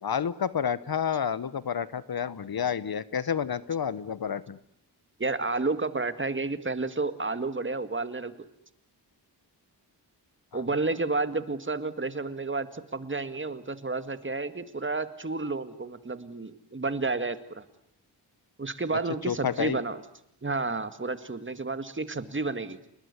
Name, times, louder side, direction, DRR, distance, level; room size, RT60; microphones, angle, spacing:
voice 1, 0.0-4.6 10.5-10.6 19.3-19.8, left 7 dB, 60° left, 17 dB, 1.1 m, -29 dB
voice 2, 5.2-8.4 10.5-17.6 18.6-20.0 20.4-22.9, right 3 dB, 30° right, 11 dB, 2.0 m, -31 dB
29.5 x 20.0 x 9.8 m, 0.76 s
cardioid pair, 80°, 42 cm